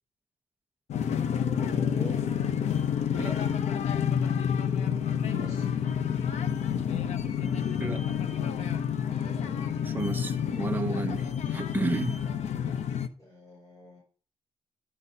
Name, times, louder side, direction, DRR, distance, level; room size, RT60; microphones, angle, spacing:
sound 1, 0.9-13.1, left 8 dB, 90° left, 0.7 m, -29 dB
voice 1, 1.5-2.3 5.3-5.8 9.2-9.7 13.2-14.0, right 1 dB, 30° left, 4.2 m, -45 dB
voice 2, 9.8-12.2, right 3 dB, 15° right, 0.8 m, -32 dB
10.5 x 4.2 x 5.4 m
wide cardioid pair, 150°, 11 cm